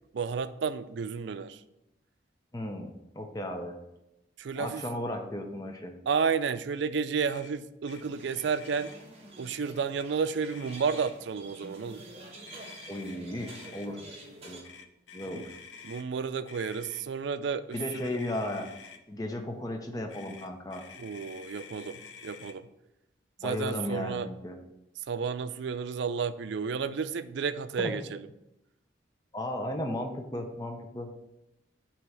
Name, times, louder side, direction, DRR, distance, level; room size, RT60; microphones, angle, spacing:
voice 1, 0.1-1.6 4.4-4.8 6.1-8.9 9.4-12.0 15.3-15.4 15.8-17.8 21.0-22.7 23.4-24.3 25.1-28.3, right 6 dB, 75° right, 13 dB, 0.4 m, -31 dB
voice 2, 2.5-3.8 4.6-5.9 12.9-14.0 14.4-14.6 15.1-15.5 17.7-18.7 19.1-20.8 23.4-24.6 27.8-27.9 29.3-31.1, left 1 dB, 20° left, 4 dB, 0.6 m, -35 dB
Motor vehicle (road), 7.1-7.5 7.8-8.0 8.3-9.0 9.7-10.1 10.4-11.3 12.4-13.9 14.6-16.1 16.5-17.0 17.7-19.0 20.1-22.6, left 6 dB, 90° left, 0.6 m, -49 dB
sound 1, 7.9-14.6, right 2 dB, 30° right, 1.3 m, -49 dB
7.7 x 3.0 x 5.6 m, 0.88 s
head